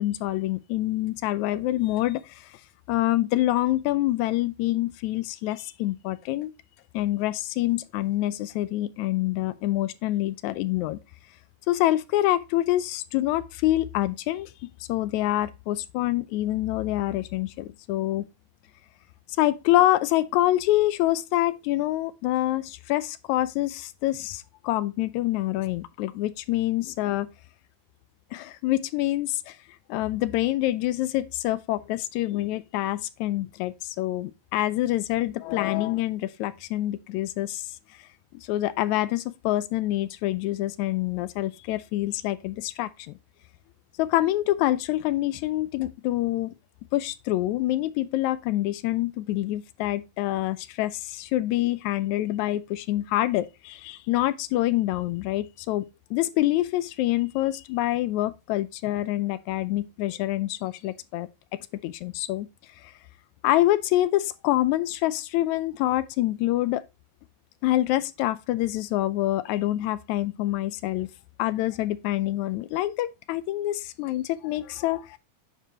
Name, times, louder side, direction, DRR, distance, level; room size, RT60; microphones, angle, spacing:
voice 1, 0.0-2.5 2.9-6.5 6.9-11.0 11.7-14.5 14.9-18.3 19.4-27.3 28.3-29.6 29.9-37.7 38.3-43.1 44.0-46.6 46.9-61.3 61.8-62.5 63.4-66.8 67.6-71.1 71.4-75.2, left 15 dB, 85° left, 1.9 m, -26 dB
9.0 x 4.8 x 2.8 m
omnidirectional pair, 3.3 m